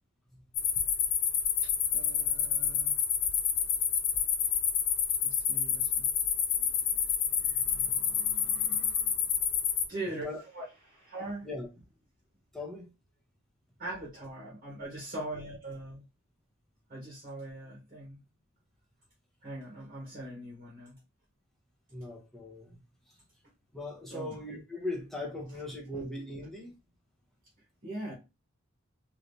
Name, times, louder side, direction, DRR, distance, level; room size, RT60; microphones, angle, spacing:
sound 1, 0.5-9.8, left 8 dB, 55° left, 0.5 m, -28 dB
voice 1, 1.6-3.0 5.2-6.1 9.9-10.3 10.5-11.5 13.8-16.0 16.9-18.2 19.4-21.0 24.1-24.4 27.8-28.1, right 1 dB, 40° right, 1.2 m, -41 dB
voice 2, 6.8-9.3 10.2-10.4 11.4-11.7 12.5-12.9 21.9-22.8 23.1-23.2 23.7-26.7, left 2 dB, ahead, 0.8 m, -41 dB
3.2 x 2.8 x 2.7 m
head